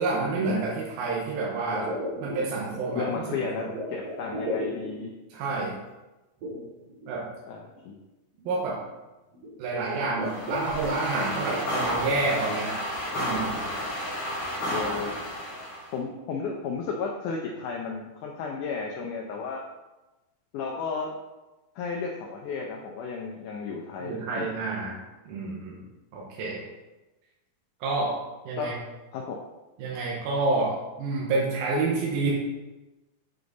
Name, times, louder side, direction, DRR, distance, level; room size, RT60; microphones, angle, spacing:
voice 1, 0.0-1.9 2.2-3.4 3.6-3.7 5.3-5.7 7.1-7.3 8.5-8.8 9.6-12.8 13.2-13.5 24.0-25.0 25.3-25.8 26.1-26.6 27.8-28.2 28.5-28.7 29.8-32.3, right 3 dB, 85° right, -4 dB, 2.9 m, -28 dB
sound 1, 1.7-5.2 6.4-7.1 7.8-7.9 8.4-8.7 9.3-9.6 10.0-11.6, left 1 dB, 65° right, 3.2 m, -35 dB
voice 2, 3.0-5.1 7.5-8.0 11.3-11.4 14.7-15.1 15.9-19.6 20.5-21.1 21.8-24.5 28.6-28.7 29.1-29.4, left 5 dB, 75° left, 0 dB, 1.9 m, -33 dB
sound 2, 10.2-15.9, equal, 40° left, 1.2 m, -32 dB
8.1 x 5.0 x 4.0 m, 1.1 s
omnidirectional pair, 4.2 m